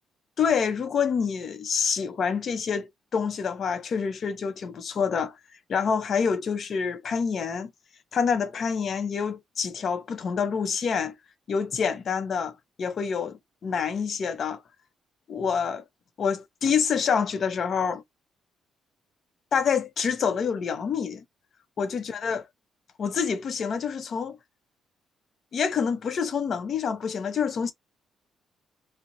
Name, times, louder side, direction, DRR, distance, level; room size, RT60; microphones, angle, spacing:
voice 1, 0.4-5.4 5.7-7.7 8.1-11.1 11.5-14.6 15.3-15.8 16.2-18.0 19.5-21.2 21.8-22.4 23.0-24.4 25.5-27.7, left 6 dB, 55° left, 0.6 m, -27 dB
2.6 x 2.0 x 2.7 m
cardioid pair, 90°, 0 cm